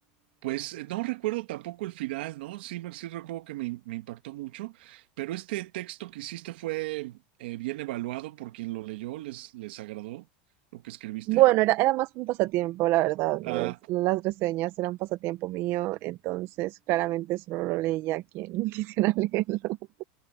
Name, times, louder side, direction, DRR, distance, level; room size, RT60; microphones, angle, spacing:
voice 1, 0.4-10.3 10.7-11.4 13.4-13.8, right 18 dB, 85° right, 1.8 m, -35 dB
voice 2, 11.3-19.8, right 17 dB, 45° right, 0.7 m, -27 dB
supercardioid pair, 150°, 5 cm